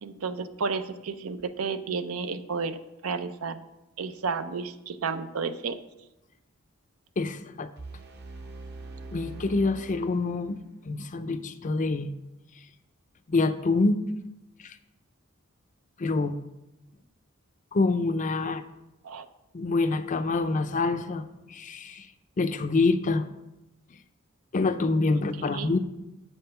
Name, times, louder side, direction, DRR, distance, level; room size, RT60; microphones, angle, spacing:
voice 1, 0.0-3.6 4.0-5.8 19.0-19.3 25.4-25.7, right 5 dB, 80° right, 11 dB, 0.6 m, -32 dB
voice 2, 7.2-7.7 9.1-10.6 10.8-12.1 13.3-14.0 14.6-14.8 16.0-16.3 17.7-18.6 19.5-22.1 22.4-23.3 24.5-25.8, left 3 dB, 35° left, 10 dB, 0.5 m, -26 dB
sound 1, 7.8-10.8, right 3 dB, 50° right, 0.9 m, -43 dB
7.8 x 5.4 x 5.7 m, 0.94 s
head